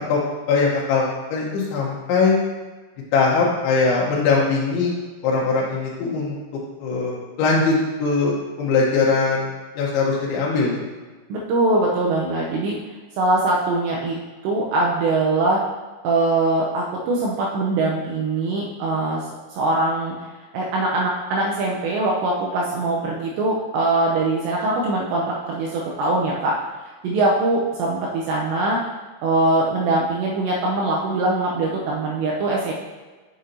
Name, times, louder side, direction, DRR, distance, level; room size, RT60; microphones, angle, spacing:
voice 1, 0.5-2.4 3.1-4.9 5.2-6.3 6.8-9.5 9.8-10.8, left 4 dB, 75° left, -5 dB, 3.2 m, -21 dB
voice 2, 11.3-12.8 13.2-14.2 14.4-15.6 16.0-19.2 19.5-20.1 20.5-26.5 27.0-28.8 29.2-32.7, right 2 dB, 85° right, -3 dB, 2.6 m, -22 dB
7.6 x 6.2 x 2.7 m, 1.3 s
omnidirectional pair, 5.8 m